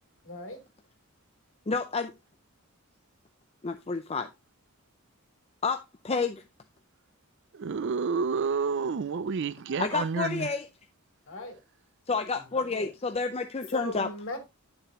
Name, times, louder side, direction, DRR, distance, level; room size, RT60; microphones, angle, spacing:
voice 1, 0.2-0.6 11.3-11.6 12.5-12.9 13.7-14.4, left 2 dB, 60° left, 3.3 m, -37 dB
voice 2, 1.7-2.1 3.6-4.3 5.6-5.8 6.0-6.4 9.8-10.7 12.1-14.1, left 4 dB, 30° left, 0.5 m, -29 dB
voice 3, 7.6-10.5, right 5 dB, 55° right, 0.4 m, -29 dB
10.5 x 6.8 x 2.9 m
head